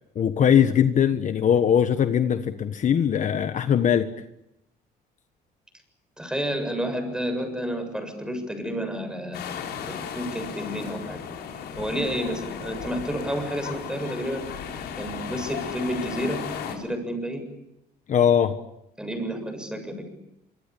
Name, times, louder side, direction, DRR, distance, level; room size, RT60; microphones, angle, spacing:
voice 1, 0.1-4.1 18.1-18.5, left 8 dB, 45° left, 10 dB, 1.4 m, -20 dB
voice 2, 6.2-9.4 9.9-11.2 11.8-14.4 15.0-17.4 19.0-20.1, equal, 5° right, 7 dB, 7.4 m, -30 dB
sound 1, 9.3-16.8, left 7 dB, 75° left, 5.6 m, -35 dB
25.5 x 25.0 x 8.5 m, 0.81 s
cardioid pair, 110°, 17 cm